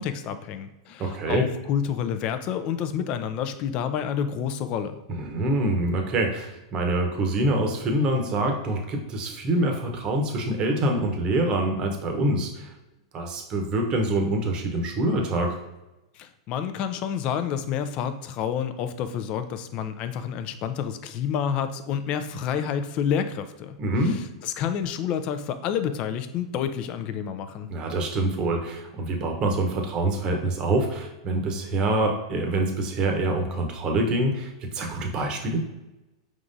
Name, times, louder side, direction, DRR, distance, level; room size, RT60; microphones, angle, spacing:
voice 1, 0.0-5.0 16.2-23.7 24.0-27.7, left 8 dB, 45° left, 9 dB, 0.4 m, -29 dB
voice 2, 1.0-1.4 5.1-12.7 13.1-15.6 23.8-24.2 27.7-35.6, right 1 dB, 35° right, 3 dB, 0.9 m, -25 dB
4.7 x 3.6 x 2.6 m, 1.0 s
hypercardioid pair, 110°, 3 cm